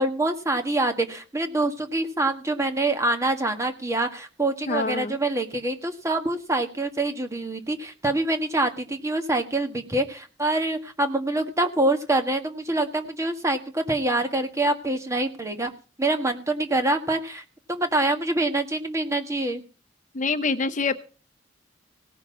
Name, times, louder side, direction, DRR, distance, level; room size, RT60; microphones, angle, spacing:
voice 1, 0.0-15.7 16.0-19.6, right 2 dB, 15° right, 5 dB, 1.6 m, -25 dB
voice 2, 4.7-5.2 20.1-21.0, left 4 dB, 40° left, 10 dB, 0.8 m, -25 dB
17.5 x 6.5 x 7.4 m, 0.36 s
head